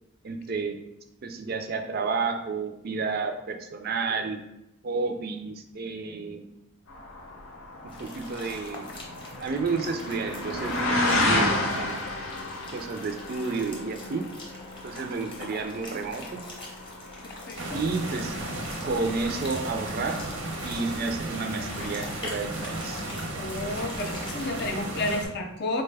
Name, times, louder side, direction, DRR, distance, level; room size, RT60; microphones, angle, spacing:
voice 1, 0.2-0.8 1.2-4.4 4.8-6.4 7.8-8.9 9.4-12.0 12.7-14.2 14.8-16.4 17.7-18.3 18.8-20.2 20.6-23.0, right 4 dB, 45° right, 5 dB, 0.4 m, -31 dB
sound 1, 6.9-19.3 19.6-20.2 20.7-20.8, left 2 dB, 85° left, 0.7 m, -32 dB
sound 2, 7.9-24.8, left 2 dB, 25° left, 0.8 m, -44 dB
voice 2, 17.5-17.8 23.4-25.8, left 2 dB, 50° left, 4 dB, 0.5 m, -31 dB
sound 3, 17.6-25.3, right 1 dB, 80° right, 0.7 m, -34 dB
4.1 x 2.2 x 3.3 m, 0.87 s
head